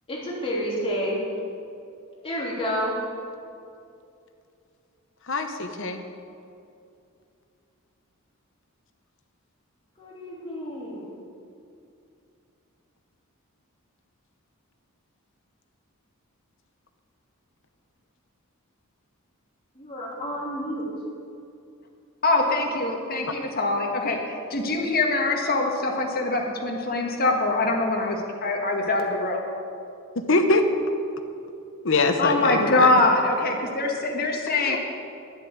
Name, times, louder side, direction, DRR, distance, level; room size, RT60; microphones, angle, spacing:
voice 1, 0.1-1.2 2.2-3.0 10.0-11.1 19.7-20.9, equal, 25° left, -5 dB, 3.3 m, -30 dB
voice 2, 5.3-6.0 30.3-30.6 31.8-33.0 34.6-34.8, left 2 dB, 60° left, 6 dB, 1.1 m, -23 dB
voice 3, 22.2-29.4 32.2-34.8, left 2 dB, 45° left, 1 dB, 1.7 m, -23 dB
11.0 x 8.2 x 8.2 m, 2.5 s
head